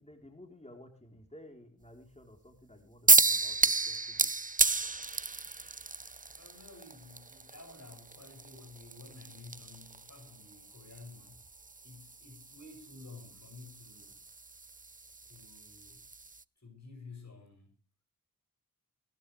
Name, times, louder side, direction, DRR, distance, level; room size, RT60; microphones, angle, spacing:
voice 1, 0.0-3.6 3.9-4.3, left 1 dB, 20° left, 3.6 m, -54 dB
sound 1, 3.1-16.4, right 3 dB, 25° right, 0.7 m, -32 dB
voice 2, 6.3-11.5 11.8-14.2 15.3-16.0 16.6-17.8, left 3 dB, 50° left, 6.8 m, -52 dB
20.0 x 13.0 x 3.3 m
cardioid pair, 40°, 35 cm